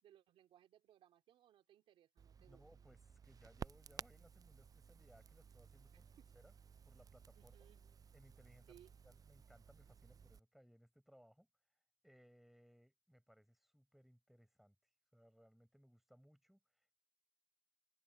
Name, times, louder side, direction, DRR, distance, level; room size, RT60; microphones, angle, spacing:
voice 1, 0.0-2.6 6.2-6.3 7.3-7.8 8.7-8.9, right 11 dB, 85° right, 3.9 m, -66 dB
Crackle, 2.2-10.4, right 6 dB, 45° right, 0.4 m, -56 dB
voice 2, 2.5-6.1 6.3-6.5 6.9-7.7 8.1-14.7 15.1-17.0, equal, ahead, 4.8 m, -67 dB
open air
supercardioid pair, 50°, 9 cm